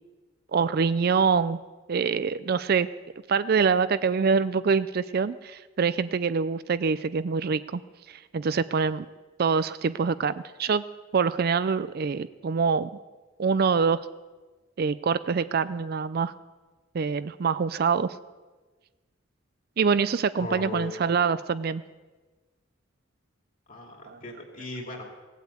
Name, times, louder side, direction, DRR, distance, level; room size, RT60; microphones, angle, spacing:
voice 1, 0.5-1.6 1.9-2.9 3.3-7.8 8.1-9.1 9.4-10.8 11.1-12.9 13.4-14.1 14.8-16.3 16.9-18.1 19.8-21.8 24.1-24.2, right 5 dB, 45° right, 14 dB, 0.4 m, -25 dB
voice 2, 20.4-21.0 23.7-25.1, left 3 dB, 40° left, 1 dB, 2.7 m, -37 dB
17.5 x 8.2 x 8.2 m, 1.3 s
head